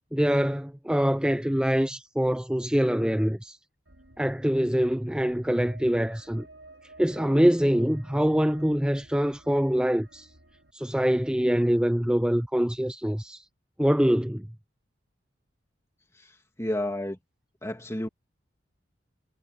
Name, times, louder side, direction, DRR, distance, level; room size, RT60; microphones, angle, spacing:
voice 1, 0.1-3.6 4.2-6.5 7.0-10.3 10.7-13.4 13.8-14.4, equal, 5° right, 0.5 m, -24 dB
sound 1, 3.9-10.7, right 2 dB, 85° right, 5.0 m, -53 dB
voice 2, 16.1-17.2 17.6-18.1, left 1 dB, 15° left, 2.5 m, -31 dB
head